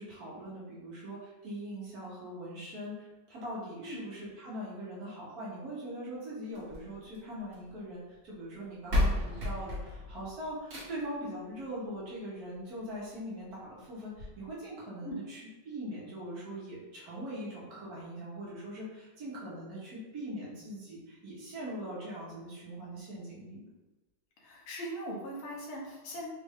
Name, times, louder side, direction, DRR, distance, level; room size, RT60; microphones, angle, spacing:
voice 1, 0.0-23.6, right 1 dB, 55° right, -6 dB, 1.3 m, -41 dB
sound 1, 6.5-7.7 8.5-8.6 8.9-11.2 12.5-12.6 13.1-13.2 13.5-13.6 14.1-14.3, left 1 dB, 40° right, 1.0 m, -33 dB
voice 2, 24.4-26.3, equal, 85° left, -2 dB, 1.7 m, -40 dB
4.3 x 2.5 x 3.5 m, 1.1 s
omnidirectional pair, 2.2 m